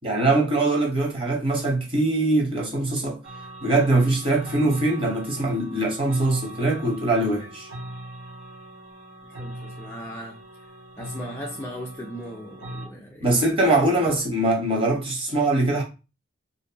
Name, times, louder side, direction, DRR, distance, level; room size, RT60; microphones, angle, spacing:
voice 1, 0.0-3.2 3.6-7.7 13.2-15.8, right 2 dB, 25° right, 0.8 m, -22 dB
sound 1, 3.2-12.9, right 1 dB, 75° right, 0.9 m, -41 dB
voice 2, 9.2-10.4 11.0-13.4, equal, 10° left, 0.3 m, -37 dB
2.6 x 2.1 x 2.7 m
head